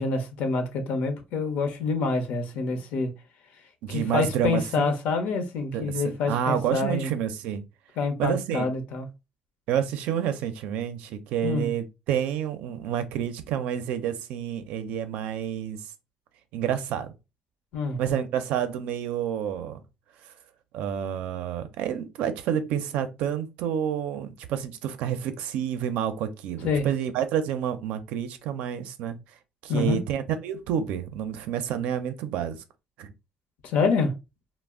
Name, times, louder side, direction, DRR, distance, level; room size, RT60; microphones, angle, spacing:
voice 1, 0.0-3.1 3.9-7.1 8.0-9.1 11.4-11.7 17.7-18.0 26.6-26.9 29.7-30.0 33.6-34.1, left 4 dB, 85° left, 0.7 m, -27 dB
voice 2, 3.8-4.9 5.7-7.6 8.2-8.7 9.7-15.8 16.5-17.1 18.0-19.8 20.7-29.2 29.6-32.6 33.0-33.1, right 9 dB, 90° right, 0.4 m, -29 dB
2.4 x 2.0 x 3.5 m
cardioid pair, 130°, 2 cm